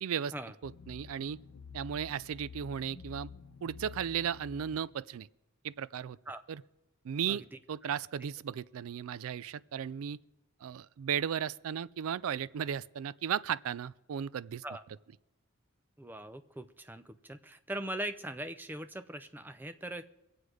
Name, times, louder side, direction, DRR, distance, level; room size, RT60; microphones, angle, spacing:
voice 1, 0.0-0.3 0.6-1.4 1.7-3.3 3.6-5.3 5.6-6.2 6.5-6.6 7.0-10.2 10.6-14.6, right 8 dB, 75° right, 0.3 m, -35 dB
sound 1, 0.6-4.8, left 6 dB, 75° left, 0.8 m, -50 dB
voice 2, 16.0-20.0, right 1 dB, 10° right, 0.5 m, -41 dB
23.0 x 7.9 x 4.9 m
head